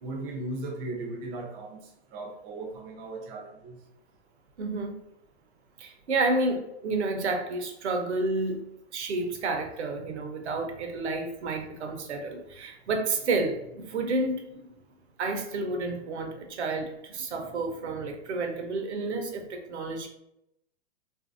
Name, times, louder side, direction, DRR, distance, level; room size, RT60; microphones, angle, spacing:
voice 1, 0.0-1.8 2.1-3.8, right 2 dB, 30° right, 2 dB, 0.5 m, -37 dB
voice 2, 4.6-5.0 5.8-8.6 8.9-14.7 15.2-20.1, right 3 dB, 75° right, 4 dB, 0.8 m, -30 dB
2.8 x 2.6 x 2.4 m, 0.81 s
hypercardioid pair, 125°, 34 cm